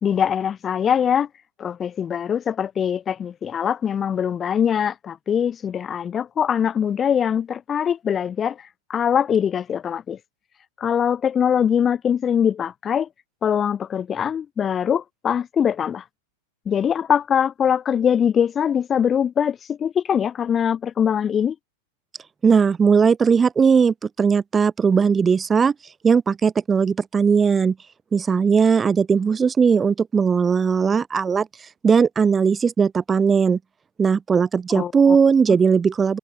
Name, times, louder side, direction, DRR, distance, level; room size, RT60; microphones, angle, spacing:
voice 1, 0.0-1.3 1.6-10.2 10.8-13.1 13.4-16.0 16.7-21.6 34.7-35.2, left 8 dB, 25° left, 2.6 m, -22 dB
voice 2, 22.4-25.7 26.0-27.8 28.1-31.5 31.8-33.6 34.0-36.2, right 6 dB, 15° right, 2.1 m, -18 dB
figure-of-eight pair, 90°, 0 cm